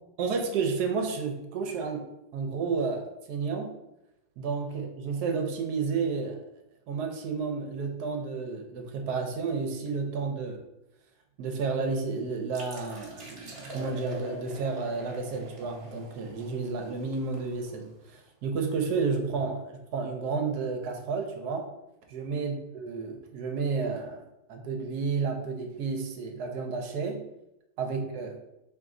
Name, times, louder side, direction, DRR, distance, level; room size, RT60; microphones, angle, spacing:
voice 1, 0.2-2.0 2.3-3.0 3.3-3.8 4.4-6.4 6.9-10.6 11.4-21.7 22.1-24.2 24.5-27.3 27.8-28.4, right 4 dB, 75° right, 3 dB, 1.2 m, -31 dB
sound 1, 12.5-18.1, right 1 dB, 45° right, 1.0 m, -45 dB
3.6 x 3.1 x 3.7 m, 0.90 s
omnidirectional pair, 1.8 m